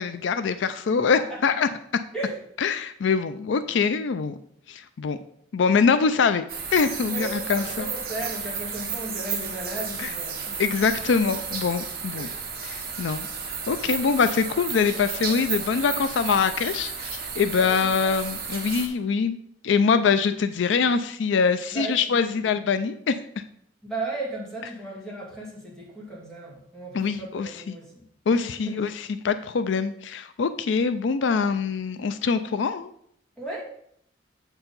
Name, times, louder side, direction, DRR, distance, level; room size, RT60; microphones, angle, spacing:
voice 1, 0.0-2.0 2.6-4.4 4.7-5.2 5.5-6.4 6.7-7.9 8.5-8.6 10.0-10.2 10.6-12.3 12.6-13.3 13.7-19.4 19.6-23.2 26.9-27.8 28.3-32.9, left 5 dB, 75° left, 11 dB, 0.4 m, -24 dB
sound 1, 6.5-18.9, right 6 dB, 55° right, 1.4 m, -33 dB
voice 2, 7.1-10.5 12.2-12.4 17.6-17.7 21.7-22.0 23.8-28.0 28.3-28.7 33.4-33.6, right 2 dB, 5° left, -4 dB, 2.2 m, -35 dB
7.7 x 4.5 x 5.3 m, 0.68 s
head